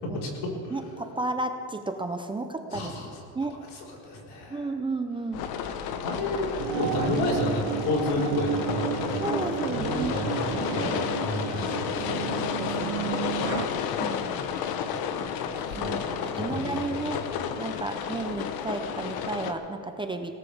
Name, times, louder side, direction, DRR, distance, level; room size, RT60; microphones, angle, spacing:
voice 1, 0.0-0.7 2.7-3.1 3.7-4.7 6.0-8.8 9.1-9.3 9.8-12.4 15.5-16.0 16.3-17.1, left 2 dB, 75° left, -3 dB, 4.6 m, -31 dB
voice 2, 0.7-2.9 3.3-3.6 4.5-5.4 9.2-10.2 12.4-13.3 14.0-14.4 15.7-17.2 17.6-20.4, right 2 dB, 10° right, 6 dB, 0.6 m, -33 dB
sound 1, 5.3-19.5, left 7 dB, 60° left, 1.1 m, -32 dB
sound 2, 6.6-13.7, right 15 dB, 80° right, 0.7 m, -32 dB
21.0 x 17.5 x 3.5 m, 2.9 s
cardioid pair, 135°, 41 cm